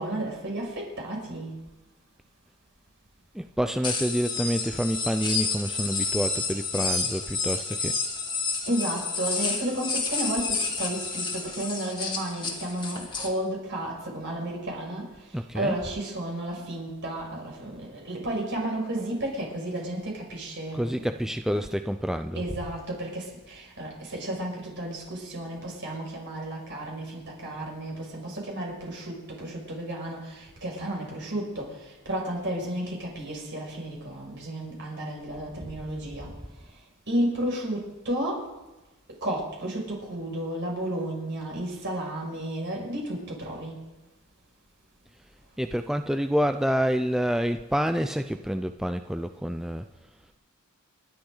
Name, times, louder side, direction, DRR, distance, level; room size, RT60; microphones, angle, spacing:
voice 1, 0.0-1.5 8.7-15.1 15.5-21.1 21.5-21.6 22.3-31.7 32.0-36.3 37.1-38.4 39.2-43.8, right 1 dB, 60° right, -1 dB, 6.1 m, -32 dB
voice 2, 3.3-8.0 15.3-15.7 20.7-22.4 45.6-49.9, equal, ahead, 7 dB, 0.4 m, -28 dB
sound 1, 3.8-13.3, left 4 dB, 20° left, 2.1 m, -30 dB
29.0 x 11.5 x 3.9 m, 1.0 s
head